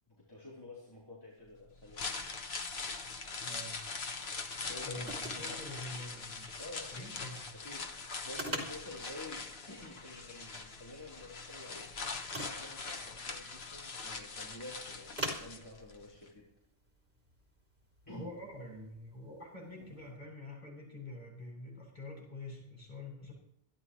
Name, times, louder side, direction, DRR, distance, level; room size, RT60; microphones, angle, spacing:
voice 1, 0.1-2.1 4.7-5.6 6.6-6.9 7.5-11.9 12.4-16.5 18.1-18.2 19.8-19.9, left 2 dB, 25° left, -7 dB, 4.0 m, -49 dB
sound 1, 1.7-16.0 16.3-16.4, left 4 dB, 80° left, 1.4 m, -42 dB
sound 2, 3.0-20.1, equal, 60° right, 3.5 m, -48 dB
voice 2, 3.4-3.7 4.8-6.5 6.9-7.4 18.1-23.3, left 1 dB, 45° left, -3 dB, 7.9 m, -46 dB
25.0 x 11.0 x 3.2 m, 0.75 s
omnidirectional pair, 1.0 m